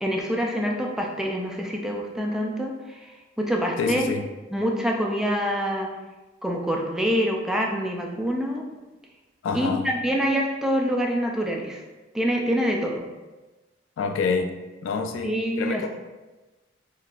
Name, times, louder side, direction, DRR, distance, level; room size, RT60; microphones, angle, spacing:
voice 1, 0.0-4.1 4.5-5.9 6.4-8.6 9.5-9.7 10.0-11.8 12.1-13.0 15.2-15.9, equal, 5° right, 0 dB, 0.3 m, -26 dB
voice 2, 3.8-4.3 9.4-9.9 14.0-14.6 14.8-15.9, left 5 dB, 90° left, 6 dB, 0.4 m, -27 dB
3.8 x 2.6 x 2.4 m, 1.2 s
head